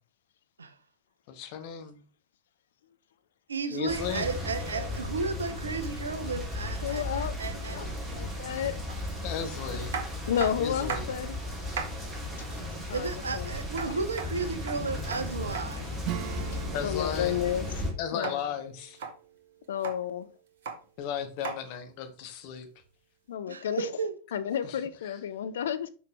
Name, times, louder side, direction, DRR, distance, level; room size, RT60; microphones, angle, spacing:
voice 1, 1.3-2.0 3.7-4.3 9.2-9.9 10.6-11.1 16.7-17.4 18.0-19.0 21.0-22.7 24.6-24.8 25.0-25.2, left 8 dB, 45° left, 1.3 m, -35 dB
voice 2, 3.5-7.8 9.7-9.8 12.9-15.9 23.5-24.1, right 4 dB, 75° right, 0.8 m, -34 dB
sound 1, 3.9-17.9, left 1 dB, 15° right, 2.7 m, -36 dB
voice 3, 6.8-8.8 10.3-11.4 12.9-13.6 16.8-17.8 18.1-18.4 19.7-20.3 23.3-23.9 24.3-25.9, left 9 dB, 60° left, 0.5 m, -32 dB
sound 2, 8.9-9.0 9.9-11.3 11.5-12.0 13.7-15.7 18.2-18.4 18.8-19.1 19.6-20.0 20.5-20.8 21.4-21.6 22.8-22.9, right 5 dB, 55° right, 1.4 m, -36 dB
Acoustic guitar / Strum, 16.0-20.3, right 11 dB, 40° right, 0.6 m, -42 dB
6.2 x 5.8 x 3.3 m
figure-of-eight pair, 90°, 0 cm